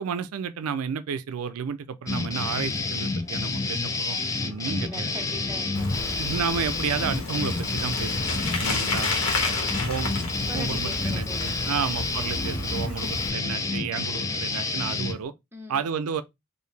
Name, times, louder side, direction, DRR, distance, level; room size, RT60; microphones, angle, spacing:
voice 1, 0.0-5.1 6.2-9.1 9.8-10.2 10.5-15.3 15.7-16.2, right 6 dB, 75° right, 0.4 m, -31 dB
sound 1, 2.1-15.2, left 3 dB, 15° left, 0.3 m, -29 dB
sound 2, 4.4-14.8, left 2 dB, 35° left, 1.3 m, -49 dB
voice 2, 4.4-6.2 8.3-9.7 10.5-11.9 12.7-13.1 15.5-15.8, equal, 10° right, 0.8 m, -43 dB
Bicycle, 5.7-13.3, left 2 dB, 70° left, 1.4 m, -31 dB
4.7 x 2.6 x 3.2 m
head